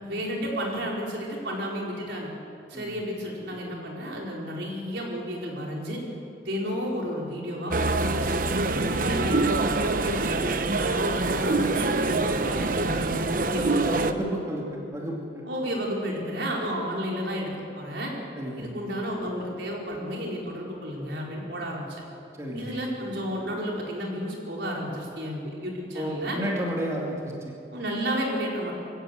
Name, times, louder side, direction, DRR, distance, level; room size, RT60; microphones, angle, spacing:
voice 1, 0.0-2.3 2.7-6.0 6.4-8.4 8.9-10.4 10.8-14.1 15.5-18.1 18.6-22.0 22.5-26.4 27.7-28.7, equal, 75° right, -2 dB, 4.7 m, -32 dB
sound 1, 7.7-14.1, right 3 dB, 50° right, 0.9 m, -25 dB
voice 2, 8.7-9.1 13.5-15.4 18.4-18.8 22.4-22.8 25.9-27.5, equal, 15° right, -3 dB, 2.5 m, -32 dB
23.0 x 16.5 x 7.8 m, 2.6 s
head